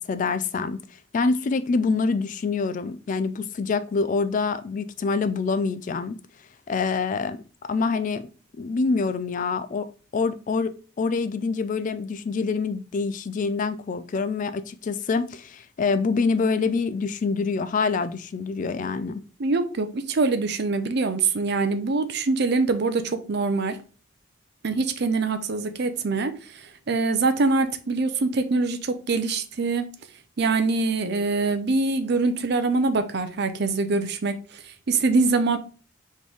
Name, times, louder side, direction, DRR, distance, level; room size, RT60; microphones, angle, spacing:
voice 1, 0.0-0.8 1.1-6.2 6.7-7.4 7.7-8.3 8.6-9.9 10.1-19.2, left 4 dB, 40° left, 0.3 m, -26 dB
voice 2, 19.4-23.8 24.6-26.6 26.9-29.9 30.4-34.6 34.9-35.6, right 3 dB, 55° right, 0.5 m, -24 dB
4.3 x 3.1 x 3.4 m
head